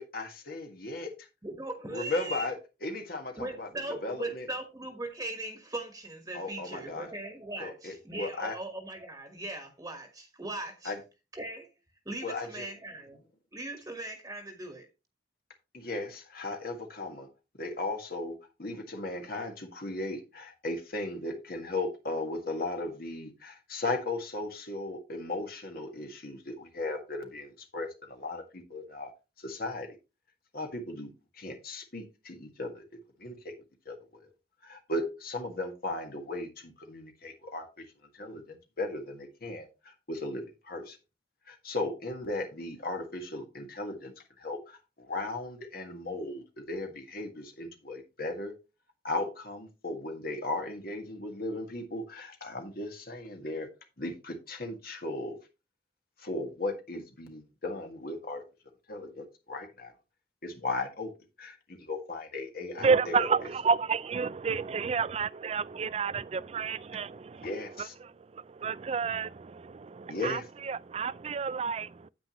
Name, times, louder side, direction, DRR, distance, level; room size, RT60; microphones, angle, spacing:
voice 1, 0.0-1.3 1.9-3.7 4.0-4.5 6.3-7.1 7.6-8.6 10.9-11.0 12.2-12.7 15.7-17.3 17.6-29.1 29.4-29.9 30.5-32.8 33.2-33.5 33.9-34.0 34.6-37.8 38.1-41.0 41.5-48.5 49.0-53.7 54.0-55.4 56.2-58.4 58.9-59.9 60.4-61.1 61.4-63.3 67.4-67.9 70.1-70.4, left 2 dB, 55° left, 1.7 m, -36 dB
voice 2, 1.4-2.5 3.4-10.9 11.3-11.7 12.0-13.2 13.5-14.9, right 2 dB, 20° right, 1.4 m, -39 dB
voice 3, 62.8-72.1, right 5 dB, 35° right, 0.4 m, -30 dB
9.5 x 8.6 x 3.0 m
head